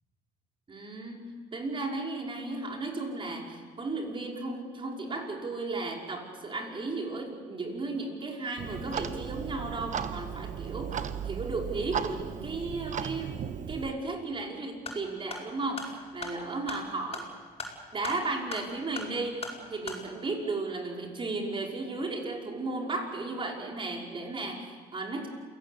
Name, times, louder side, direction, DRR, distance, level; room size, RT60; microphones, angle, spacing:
voice 1, 0.7-13.4 13.7-17.3 17.9-25.3, right 3 dB, 30° right, 1 dB, 5.3 m, -35 dB
Clock, 8.6-13.9, right 8 dB, 45° right, 1.2 m, -36 dB
sound 1, 14.7-20.0, left 3 dB, 35° left, 7.7 m, -41 dB
28.0 x 18.0 x 8.5 m, 1.5 s
cardioid pair, 110°, 17 cm